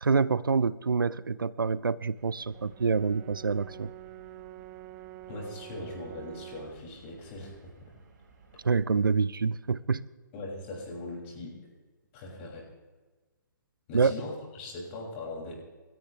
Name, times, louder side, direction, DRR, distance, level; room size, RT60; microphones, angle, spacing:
voice 1, 0.0-3.9 8.6-10.0 13.9-14.1, right 5 dB, 90° right, 19 dB, 0.6 m, -26 dB
sound 1, 2.2-8.8, right 4 dB, 55° right, 4.9 m, -58 dB
Brass instrument, 2.5-6.8, right 18 dB, 20° right, 0.4 m, -47 dB
voice 2, 5.3-7.7 10.3-11.6 12.1-12.7 13.9-15.5, left 2 dB, 35° left, -3 dB, 6.6 m, -40 dB
29.5 x 13.5 x 3.4 m, 1.3 s
hypercardioid pair, 135°, 11 cm